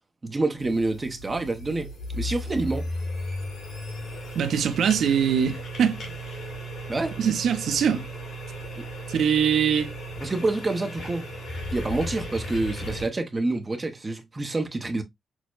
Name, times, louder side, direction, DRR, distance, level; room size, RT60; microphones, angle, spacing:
voice 1, 0.2-2.9 6.9-7.1 8.8-8.9 10.2-11.3 11.7-15.0, right 2 dB, 20° right, 0.6 m, -27 dB
sound 1, 0.6-13.1, equal, 70° left, 1.9 m, -35 dB
voice 2, 4.3-6.0 7.2-8.0 9.1-9.9, right 8 dB, 70° right, 0.7 m, -22 dB
6.1 x 2.1 x 2.3 m
wide cardioid pair, 150°, 0 cm